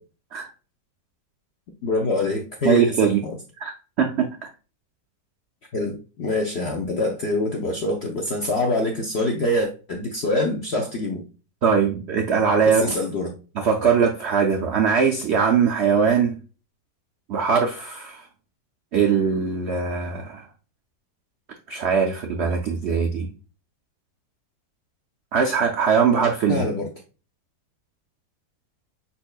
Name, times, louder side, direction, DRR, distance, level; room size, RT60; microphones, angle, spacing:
voice 1, 1.8-3.3 5.7-11.2 12.6-13.3 26.5-26.9, left 2 dB, 65° left, 1 dB, 0.6 m, -25 dB
voice 2, 2.6-3.2 3.6-3.7 4.0-4.5 11.6-12.9 13.6-16.3 17.3-18.2 18.9-20.4 21.7-23.3 25.3-26.6, right 6 dB, 80° right, 3 dB, 0.6 m, -21 dB
5.1 x 4.3 x 2.3 m, 0.35 s
omnidirectional pair, 1.9 m